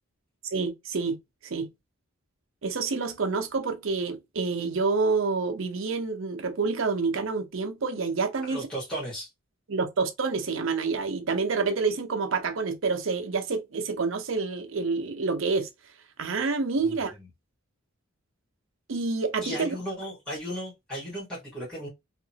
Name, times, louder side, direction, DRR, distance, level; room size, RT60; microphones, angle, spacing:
voice 1, 0.4-1.2 1.4-1.7 2.6-8.7 9.7-15.7 16.2-17.1 18.9-19.7, right 4 dB, 65° right, 0.6 m, -28 dB
voice 2, 8.4-9.3 16.8-17.3 19.4-21.9, equal, 5° left, 1.2 m, -35 dB
2.8 x 2.5 x 2.7 m
head